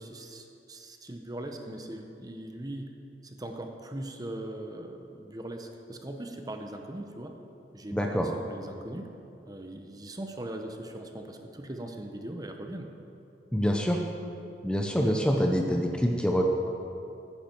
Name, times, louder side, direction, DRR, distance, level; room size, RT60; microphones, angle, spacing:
voice 1, 0.0-2.9 3.2-7.3 7.7-9.1 9.5-12.9, right 1 dB, 20° right, 4 dB, 0.9 m, -40 dB
voice 2, 7.9-8.3 13.5-14.0 14.6-16.4, equal, 5° left, 1 dB, 0.7 m, -26 dB
15.5 x 10.0 x 4.5 m, 2.7 s
head